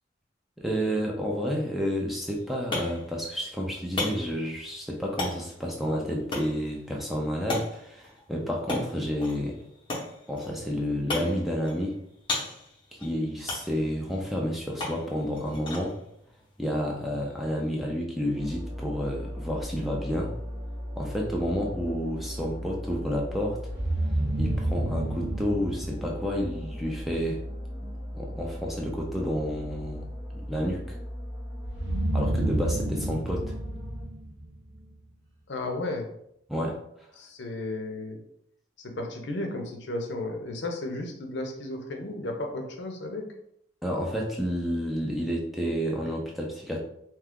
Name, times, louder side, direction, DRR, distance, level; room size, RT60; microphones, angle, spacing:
voice 1, 0.6-9.6 10.3-12.0 12.9-16.0 16.6-20.4 21.0-23.6 24.4-27.4 28.1-30.0 30.5-31.0 32.1-33.5 36.5-36.8 43.8-46.8, equal, ahead, -2 dB, 0.4 m, -30 dB
sound 1, 2.1-17.7, left 2 dB, 25° left, 0.7 m, -38 dB
sound 2, 18.3-34.0, equal, 20° right, 0.7 m, -38 dB
sound 3, 23.7-26.7 31.6-34.9, right 1 dB, 75° right, 1.0 m, -30 dB
voice 2, 35.5-36.1 37.2-38.2 38.8-43.3, left 2 dB, 70° left, 3 dB, 0.5 m, -34 dB
2.8 x 2.3 x 3.6 m, 0.74 s
head